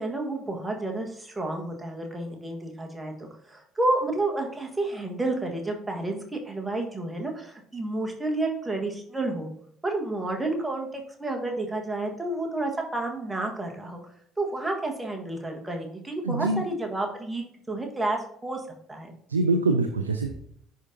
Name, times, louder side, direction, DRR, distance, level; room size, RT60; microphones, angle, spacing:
voice 1, 0.0-9.5 9.8-14.0 14.4-18.6 18.9-19.1, right 2 dB, 15° right, 2 dB, 1.5 m, -30 dB
voice 2, 16.2-16.7 19.3-20.3, right 3 dB, 85° right, 6 dB, 0.4 m, -24 dB
10.5 x 3.8 x 2.8 m, 0.65 s
figure-of-eight pair, 55°, 0 cm